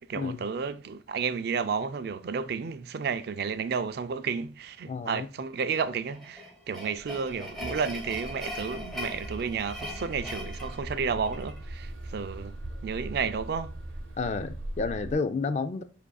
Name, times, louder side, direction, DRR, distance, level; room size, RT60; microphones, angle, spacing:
voice 1, 0.1-12.5 12.8-13.8, right 6 dB, 55° right, 0.3 m, -32 dB
voice 2, 4.9-5.3 14.1-15.8, left 4 dB, 35° left, 0.3 m, -30 dB
sound 1, 6.1-11.6, left 1 dB, ahead, 0.9 m, -40 dB
sound 2, 6.9-15.1, right 1 dB, 85° right, 0.7 m, -41 dB
7.2 x 2.6 x 2.2 m
head